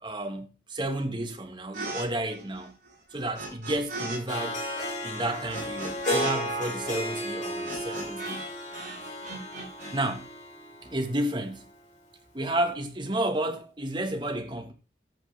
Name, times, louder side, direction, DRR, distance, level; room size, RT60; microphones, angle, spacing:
voice 1, 0.0-2.7 3.1-4.6 5.0-8.4 9.9-10.3 10.8-11.7 12.3-14.7, right 1 dB, 25° right, 1.5 m, -31 dB
sound 1, 1.7-2.0 2.3-4.2 4.4-8.5 8.7-9.9, right 2 dB, 45° right, 7.3 m, -38 dB
Harp, 4.3-11.4, left 1 dB, 45° left, 3.1 m, -34 dB
13.5 x 7.4 x 3.4 m
head